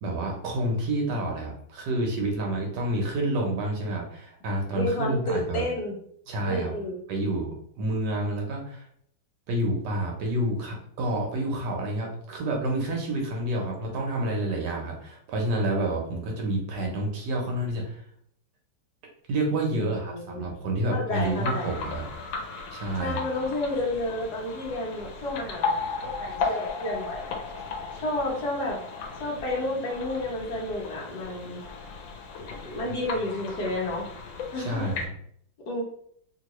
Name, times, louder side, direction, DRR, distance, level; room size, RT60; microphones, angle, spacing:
voice 1, 0.0-5.6 6.3-6.7 7.1-8.9 9.5-18.0 19.3-22.0 22.7-23.2 26.4-26.5 34.6-35.1, right 1 dB, 70° right, 0 dB, 1.3 m, -29 dB
voice 2, 4.8-5.9 6.5-7.0 19.7-20.5 20.9-21.8 23.0-27.5 27.9-28.8 29.2-31.6 32.6-34.1 34.5-34.9 35.7-35.8, left 1 dB, 65° left, -2 dB, 1.4 m, -31 dB
sound 1, 21.1-35.1, left 4 dB, 90° left, 1.4 m, -35 dB
3.0 x 3.0 x 3.0 m, 0.65 s
omnidirectional pair, 2.0 m